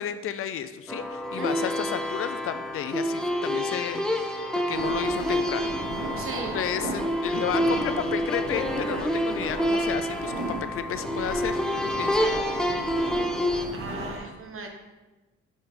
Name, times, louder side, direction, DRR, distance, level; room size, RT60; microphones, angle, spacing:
voice 1, 0.0-5.7 6.5-11.6 12.0-12.4, left 9 dB, 45° left, 10 dB, 0.5 m, -32 dB
sound 1, 0.9-13.7, equal, ahead, 0.6 m, -28 dB
voice 2, 1.4-1.7 6.2-6.6 13.7-14.7, right 3 dB, 45° right, 3 dB, 1.2 m, -37 dB
sound 2, 4.7-14.2, right 2 dB, 85° right, 1.7 m, -35 dB
5.6 x 5.5 x 3.7 m, 1.1 s
cardioid pair, 90°, 30 cm